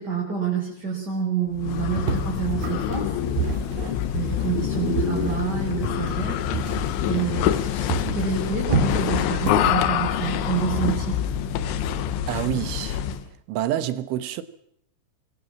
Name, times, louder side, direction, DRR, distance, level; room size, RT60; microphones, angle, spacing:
voice 1, 0.0-3.1 4.1-6.4 7.1-11.1, right 6 dB, 20° right, 6.1 m, -28 dB
sound 1, 1.5-13.3, left 10 dB, 80° left, 3.5 m, -26 dB
sound 2, 2.0-7.6 7.9-10.8, right 5 dB, 45° right, 4.4 m, -30 dB
voice 2, 12.3-13.0 13.5-14.4, right 12 dB, 75° right, 3.7 m, -27 dB
26.0 x 22.5 x 7.4 m
omnidirectional pair, 5.7 m